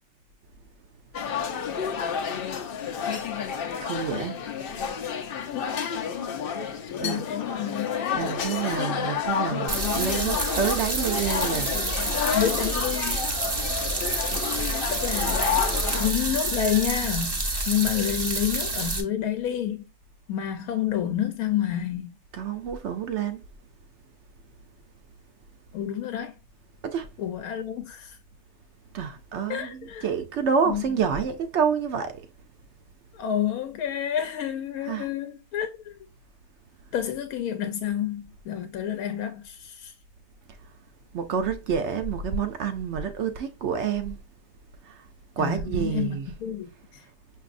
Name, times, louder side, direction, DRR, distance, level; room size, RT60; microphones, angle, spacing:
sound 1, 1.1-16.1, left 7 dB, 60° left, 0.6 m, -30 dB
voice 1, 3.8-4.4 7.0-7.3 8.1-11.7 22.3-23.4 26.8-27.1 28.9-32.1 34.9-35.1 41.1-44.2 44.9-45.0 45.4-46.3, right 6 dB, 65° right, 0.7 m, -28 dB
voice 2, 5.5-5.8 6.9-7.9 12.3-13.2 14.9-15.6 16.0-17.4 17.7-19.9 20.3-22.2 25.7-26.4 27.2-28.2 29.5-30.1 30.6-30.8 33.1-36.0 36.9-39.9 45.4-47.1, left 10 dB, 85° left, 1.1 m, -29 dB
sound 2, 9.7-19.0, right 2 dB, 30° right, 0.4 m, -28 dB
6.0 x 2.7 x 2.4 m
omnidirectional pair, 1.5 m